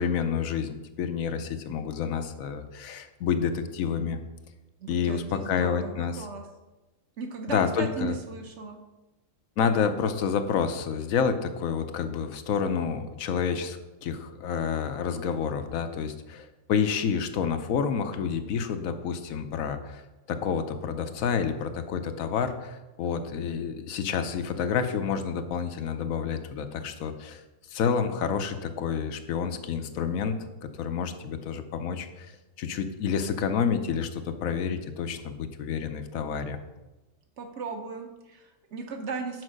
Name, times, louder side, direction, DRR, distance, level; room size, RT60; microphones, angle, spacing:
voice 1, 0.0-4.2 4.9-6.2 7.5-8.1 9.6-20.0 20.3-27.4 27.7-32.3 32.6-36.6, left 6 dB, 90° left, 8 dB, 1.1 m, -29 dB
voice 2, 4.8-6.4 7.2-8.8 37.4-39.4, right 4 dB, 60° right, 5 dB, 1.3 m, -36 dB
6.2 x 4.8 x 6.3 m, 1.1 s
omnidirectional pair, 1.4 m